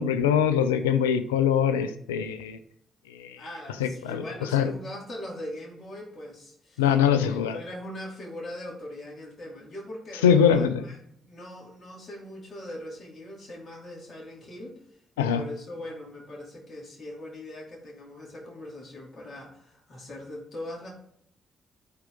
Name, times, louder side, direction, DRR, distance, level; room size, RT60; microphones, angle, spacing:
voice 1, 0.0-2.6 3.2-3.3 3.8-4.2 4.5-4.7 6.8-7.6 10.2-10.8 15.2-15.4, left 8 dB, 85° left, 11 dB, 0.5 m, -22 dB
voice 2, 3.4-11.0 11.2-14.8 15.2-20.9, left 1 dB, 45° left, -2 dB, 2.7 m, -41 dB
11.5 x 4.7 x 3.7 m, 0.68 s
hypercardioid pair, 40°, 0 cm